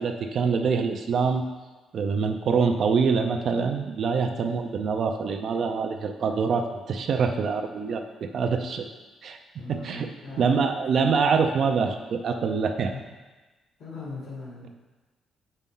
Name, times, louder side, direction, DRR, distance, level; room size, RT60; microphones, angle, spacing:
voice 1, 0.0-1.4 1.9-8.9 9.2-9.4 9.7-10.1 10.4-12.9, right 5 dB, 45° right, 5 dB, 0.5 m, -25 dB
voice 2, 9.5-10.7 13.8-14.7, left 2 dB, 65° left, -6 dB, 1.8 m, -39 dB
8.2 x 5.4 x 3.7 m, 1.2 s
cardioid pair, 165°, 0 cm